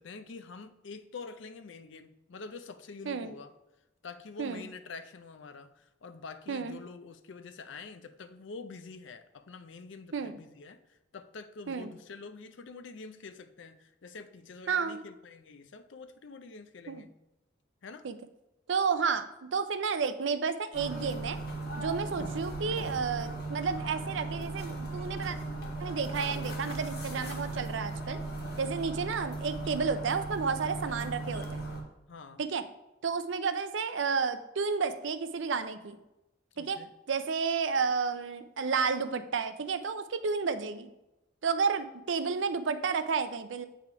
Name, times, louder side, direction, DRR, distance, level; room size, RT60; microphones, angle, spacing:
voice 1, 0.0-3.5 4.0-17.1 17.8-18.1 32.1-32.4 36.5-36.9, left 4 dB, 70° left, 0.5 m, -46 dB
voice 2, 14.7-15.0 16.9-17.0 18.0-18.1 18.7-21.4 21.8-25.4 25.8-28.2 28.6-31.7 32.4-32.6 33.0-36.0 36.6-36.8 37.1-40.9 41.4-43.7, right 5 dB, 70° right, 0.5 m, -31 dB
sound 1, 20.7-31.8, right 2 dB, 50° left, 1.4 m, -37 dB
8.1 x 3.5 x 4.7 m
head